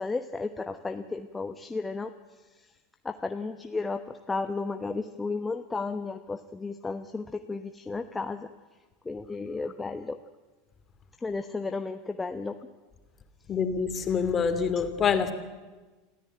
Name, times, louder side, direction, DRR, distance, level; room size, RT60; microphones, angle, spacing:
voice 1, 0.0-2.1 3.0-8.5 9.0-10.2 11.2-12.5, left 3 dB, 15° left, 7 dB, 1.1 m, -33 dB
voice 2, 13.5-15.3, left 6 dB, 30° left, 9 dB, 2.7 m, -26 dB
26.0 x 14.5 x 9.1 m, 1.3 s
hypercardioid pair, 85°, 0 cm